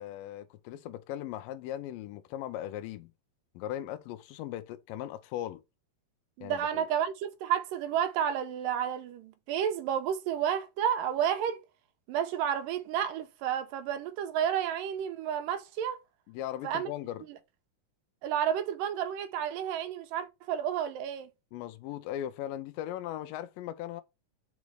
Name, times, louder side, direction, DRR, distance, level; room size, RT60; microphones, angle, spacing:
voice 1, 0.0-3.1 3.6-5.6 6.4-6.9 16.3-17.2 21.5-24.0, left 12 dB, 90° left, 2.3 m, -38 dB
voice 2, 6.4-11.6 12.1-16.0 16.6-16.9 18.2-21.3, right 9 dB, 85° right, 2.5 m, -31 dB
5.2 x 4.8 x 4.7 m
omnidirectional pair, 3.9 m